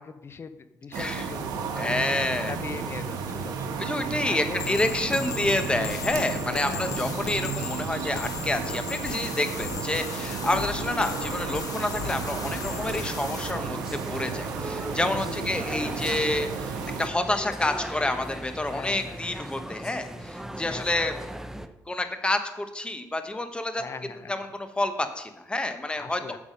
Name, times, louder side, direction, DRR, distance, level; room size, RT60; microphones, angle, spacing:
voice 1, 0.0-1.9 2.2-4.8 6.6-7.0 10.4-10.8 15.2-16.1 18.6-19.4 20.7-21.0 23.8-24.4 26.0-26.4, left 5 dB, 40° left, 12 dB, 0.8 m, -41 dB
voice 2, 0.9-1.3 1.7-2.5 3.8-21.1 21.9-23.8 24.3-26.4, left 2 dB, 15° left, 7 dB, 1.2 m, -28 dB
sound 1, 0.9-17.1, right 6 dB, 85° right, 1.2 m, -33 dB
sound 2, 4.6-13.5, left 9 dB, 65° left, 0.5 m, -37 dB
sound 3, 12.0-21.7, right 1 dB, 5° right, 0.7 m, -38 dB
8.5 x 7.0 x 5.3 m, 0.94 s
cardioid pair, 85°, 7 cm